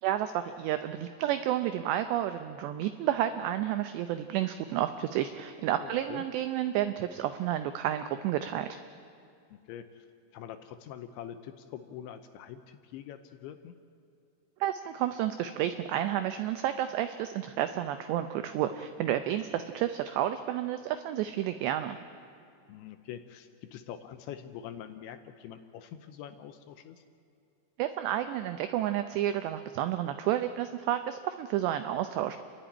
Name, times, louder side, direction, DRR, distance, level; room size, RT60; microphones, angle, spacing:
voice 1, 0.0-8.8 14.6-22.0 27.8-32.4, right 12 dB, 90° right, 9 dB, 2.4 m, -31 dB
voice 2, 5.8-6.2 9.5-10.1 10.3-13.7 19.0-19.2 19.5-19.6 22.7-27.0, left 10 dB, 80° left, 9 dB, 2.8 m, -45 dB
29.0 x 12.0 x 9.9 m, 2.5 s
omnidirectional pair, 5.8 m